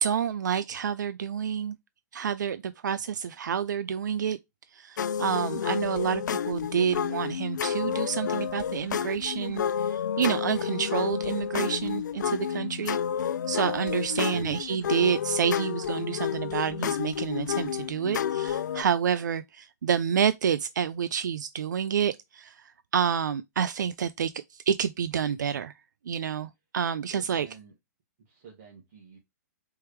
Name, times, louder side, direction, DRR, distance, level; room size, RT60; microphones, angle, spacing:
voice 1, 0.0-1.8 2.1-4.4 4.7-13.0 13.5-22.6 22.9-25.7 26.1-27.5, right 8 dB, 85° right, 0.4 m, -28 dB
sound 1, 5.0-18.8, left 8 dB, 80° left, 0.4 m, -30 dB
voice 2, 27.1-27.7 28.3-29.2, right 6 dB, 50° right, 1.9 m, -50 dB
4.5 x 3.4 x 3.1 m
hypercardioid pair, 140°, 10 cm